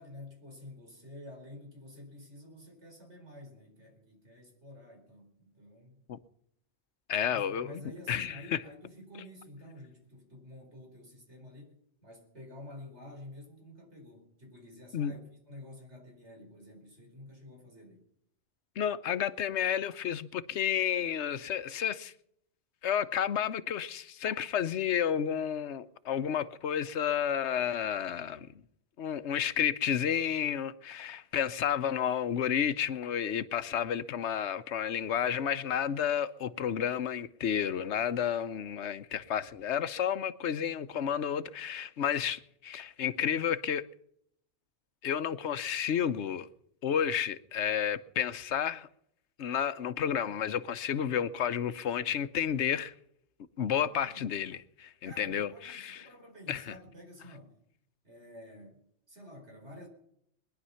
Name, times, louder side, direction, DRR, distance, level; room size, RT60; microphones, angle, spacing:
voice 1, 0.0-6.0 7.2-15.2 15.5-18.0 53.9-54.2 55.0-57.5 58.0-59.9, left 1 dB, 80° right, 4.9 m, -50 dB
voice 2, 7.1-7.8 8.1-8.6 14.9-15.1 18.8-22.1 22.8-28.5 29.0-43.8 45.0-46.5 46.8-48.9 49.4-52.9 53.6-56.0 56.5-56.7, left 8 dB, 85° left, 1.1 m, -31 dB
21.5 x 11.0 x 5.7 m
omnidirectional pair, 1.1 m